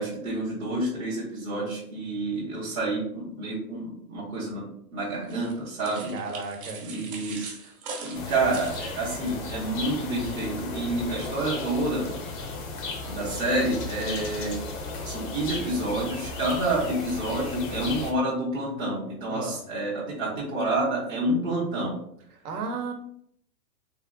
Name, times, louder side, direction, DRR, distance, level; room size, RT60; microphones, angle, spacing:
voice 1, 0.0-4.7 4.9-6.1 6.8-7.7 8.0-12.1 13.1-14.6 15.0-21.9, right 2 dB, 10° right, -9 dB, 0.5 m, -28 dB
sound 1, 5.3-9.4, right 4 dB, 40° right, 1.0 m, -41 dB
voice 2, 6.1-6.8 19.3-19.6 22.4-22.9, right 4 dB, 70° right, 3 dB, 1.0 m, -33 dB
sound 2, 8.1-18.1, left 3 dB, 35° left, 0.5 m, -35 dB
3.6 x 2.6 x 2.2 m, 0.70 s
hypercardioid pair, 130°, 47 cm